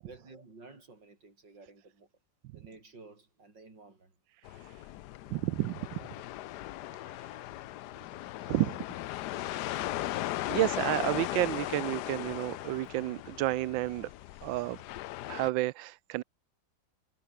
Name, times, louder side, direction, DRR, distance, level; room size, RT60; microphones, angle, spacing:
voice 1, 0.0-2.1 2.5-4.1, right 3 dB, 70° right, 5.6 m, -53 dB
sound 1, 4.5-15.5, left 15 dB, 70° left, 1.1 m, -38 dB
voice 2, 5.3-5.8 6.9-7.1 8.5-8.8 9.4-9.8 10.5-14.1 14.4-14.8 15.3-16.2, right 17 dB, 85° right, 1.3 m, -31 dB
omnidirectional pair, 2.0 m